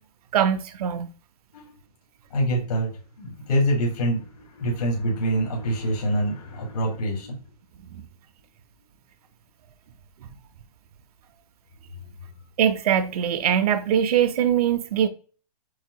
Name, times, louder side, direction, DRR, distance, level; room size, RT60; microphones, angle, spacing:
voice 1, 0.3-1.1 12.6-15.1, right 9 dB, 65° right, 0.6 m, -22 dB
voice 2, 2.3-7.4, right 1 dB, 75° left, 2.5 m, -25 dB
7.9 x 2.7 x 2.3 m
hypercardioid pair, 160°, 20 cm